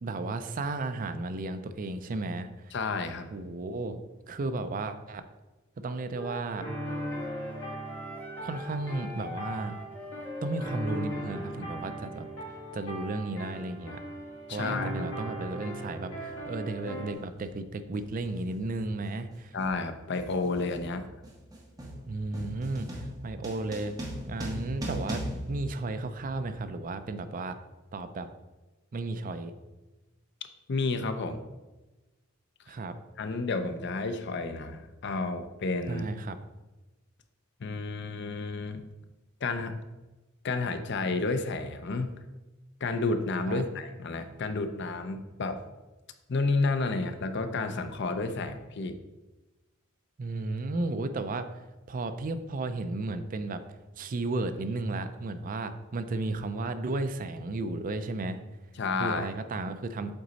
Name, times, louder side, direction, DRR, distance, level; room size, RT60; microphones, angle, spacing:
voice 1, 0.0-2.7 3.3-4.0 4.3-5.2 5.8-6.7 8.4-9.7 10.4-14.0 14.5-19.6 22.0-23.9 24.3-27.6 27.9-28.3 28.9-29.5 32.7-33.0 35.9-36.4 43.5-43.6 50.2-51.5 51.9-53.6 54.0-58.4 59.0-60.1, right 2 dB, 40° right, 10 dB, 0.4 m, -34 dB
voice 2, 2.7-3.3 14.5-15.0 19.5-21.0 30.7-31.4 33.2-36.0 37.6-38.9 39.4-39.8 40.4-42.1 42.8-45.6 46.3-49.0 58.8-59.3, left 3 dB, 60° left, 9 dB, 0.6 m, -31 dB
Wind instrument woodwind instrument, 6.1-11.6, left 2 dB, 10° left, 0.6 m, -43 dB
sound 1, 6.6-17.1, right 1 dB, 80° left, 1.9 m, -38 dB
sound 2, 16.3-16.5 17.4-17.7 17.9-26.5, right 1 dB, 20° right, 1.3 m, -40 dB
7.8 x 4.1 x 4.0 m, 1.1 s
head